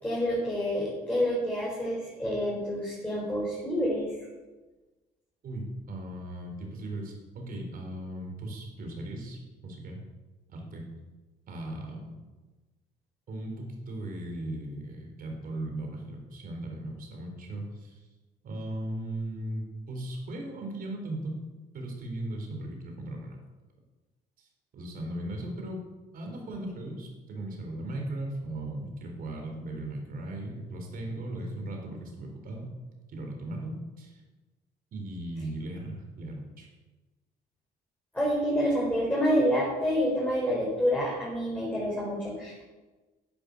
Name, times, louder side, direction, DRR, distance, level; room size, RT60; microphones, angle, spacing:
voice 1, 0.0-4.1 38.1-42.7, equal, 10° left, -6 dB, 4.7 m, -28 dB
voice 2, 5.4-10.0 10.5-10.8 11.5-12.1 13.3-18.0 18.4-21.4 21.7-23.4 24.4-24.5 24.7-25.8 26.1-32.7 33.1-34.2 34.9-36.7, right 1 dB, 60° right, 2 dB, 3.9 m, -37 dB
11.0 x 8.4 x 7.0 m, 1.2 s
cardioid pair, 95°, 17 cm